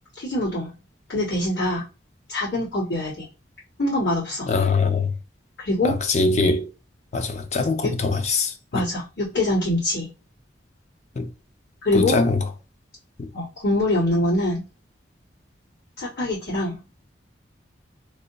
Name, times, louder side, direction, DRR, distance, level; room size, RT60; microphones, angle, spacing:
voice 1, 0.1-0.7 1.1-1.8 2.3-3.3 3.8-4.5 5.6-6.0 7.8-7.9 8.7-10.1 11.8-12.2 13.3-14.6 16.0-16.8, left 1 dB, 75° left, 2.0 m, -24 dB
voice 2, 4.5-5.1 5.8-6.6 7.1-8.5 11.2-11.3 11.9-12.4, left 3 dB, 40° left, 0.4 m, -22 dB
3.3 x 2.2 x 3.8 m
head